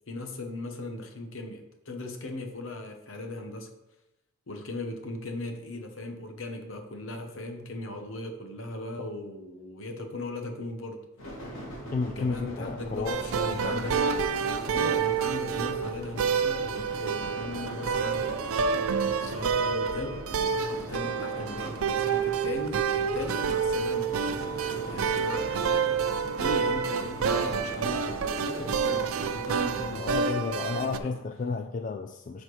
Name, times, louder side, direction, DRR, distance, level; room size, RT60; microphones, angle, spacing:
voice 1, 0.1-3.7 4.5-11.0 12.2-14.1 14.6-18.4 19.2-24.5 24.9-31.1, left 2 dB, 70° left, 5 dB, 1.0 m, -38 dB
sound 1, 11.2-30.0, equal, 85° left, 2.3 m, -41 dB
voice 2, 11.9-13.8 25.1-25.2 29.9-32.4, left 4 dB, 40° left, 5 dB, 0.3 m, -33 dB
sound 2, 13.1-31.0, right 6 dB, 85° right, 0.4 m, -28 dB
11.0 x 4.3 x 3.2 m, 0.93 s
head